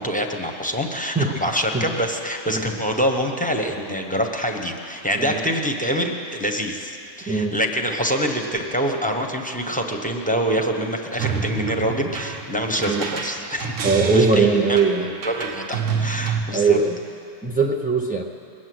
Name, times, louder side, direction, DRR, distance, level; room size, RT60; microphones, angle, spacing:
voice 1, 0.0-13.7 14.0-14.8 15.2-16.8, equal, 5° left, 2 dB, 1.0 m, -25 dB
voice 2, 7.3-7.6 12.8-13.1 13.8-15.1 16.5-17.0 17.4-18.2, right 4 dB, 10° right, 0 dB, 0.4 m, -20 dB
sound 1, 11.2-16.4, right 6 dB, 90° right, 1.3 m, -28 dB
20.5 x 8.3 x 7.9 m, 2.5 s
omnidirectional pair, 1.2 m